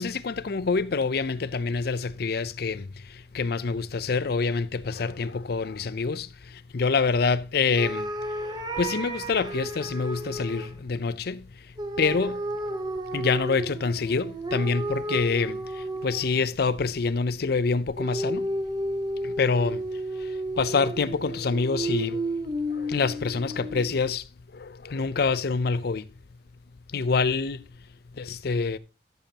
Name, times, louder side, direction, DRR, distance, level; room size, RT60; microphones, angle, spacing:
voice 1, 0.0-18.5 19.2-22.4 22.7-26.1 26.9-27.7 28.1-28.8, left 4 dB, 60° left, 0.5 m, -27 dB
sound 1, 7.7-10.7 11.8-16.5 18.0-24.1, right 1 dB, 25° right, 0.9 m, -32 dB
13.0 x 7.1 x 2.8 m
head